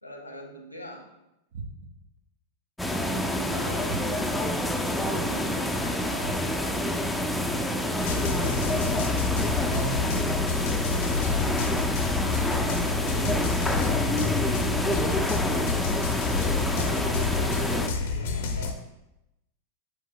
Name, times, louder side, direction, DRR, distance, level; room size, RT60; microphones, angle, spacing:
voice 1, 0.0-1.1 3.2-4.4 5.0-6.8 16.8-18.7, equal, 85° left, 2 dB, 1.1 m, -42 dB
sound 1, 1.5-2.1 3.9-4.5 6.2-6.8 8.5-9.2 10.9-11.5 13.2-13.9 15.6-16.2 17.9-18.5, right 3 dB, 50° right, 0.7 m, -40 dB
sound 2, 2.8-17.9, left 1 dB, 5° left, 0.5 m, -27 dB
voice 2, 5.5-5.6, equal, 90° right, -4 dB, 1.6 m, -46 dB
sound 3, 8.0-18.7, left 5 dB, 55° left, 0.7 m, -29 dB
7.1 x 6.1 x 2.2 m, 0.90 s
figure-of-eight pair, 90°, 0 cm